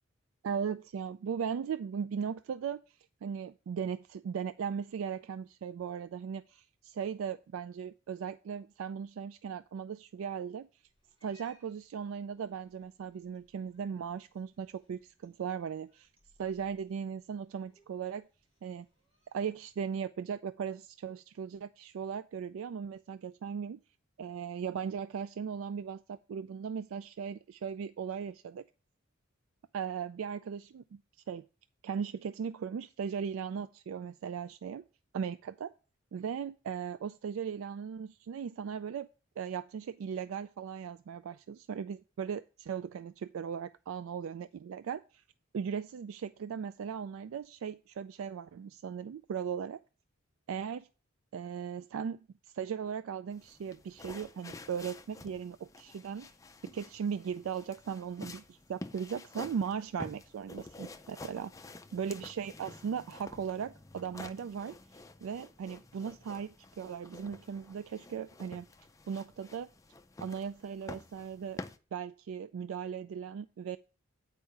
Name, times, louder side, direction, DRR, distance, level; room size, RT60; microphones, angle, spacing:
voice 1, 0.4-2.8 3.2-10.7 11.2-16.1 16.4-18.3 18.6-18.9 19.3-23.8 24.2-28.6 29.7-31.0 31.3-31.4 31.8-34.9 35.1-35.7 36.1-39.1 39.4-45.2 45.5-49.8 50.5-50.9 51.3-52.2 52.5-56.3 56.6-61.5 61.9-64.8 65.2-68.7 69.1-69.7 70.2-71.6 71.9-73.8, right 7 dB, 75° right, 0.3 m, -38 dB
Cat, 10.8-19.8, left 1 dB, 30° right, 3.6 m, -70 dB
sound 1, 53.3-71.8, left 2 dB, 15° left, 0.4 m, -49 dB
8.8 x 4.7 x 5.4 m
head